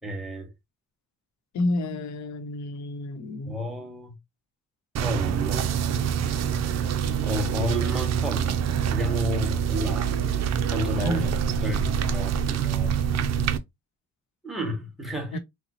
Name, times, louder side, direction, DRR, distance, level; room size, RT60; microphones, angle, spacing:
voice 1, 0.0-0.5 3.5-4.1 5.0-5.7 7.2-8.6 8.9-10.1 10.7-11.3 11.6-12.9 14.4-15.4, equal, ahead, 1.5 m, -32 dB
voice 2, 1.5-3.6 11.0-11.2 15.3-15.4, left 1 dB, 65° left, 0.9 m, -29 dB
sound 1, 5.0-13.6, right 8 dB, 60° right, 0.6 m, -26 dB
4.2 x 2.2 x 2.8 m
cardioid pair, 90°, 30 cm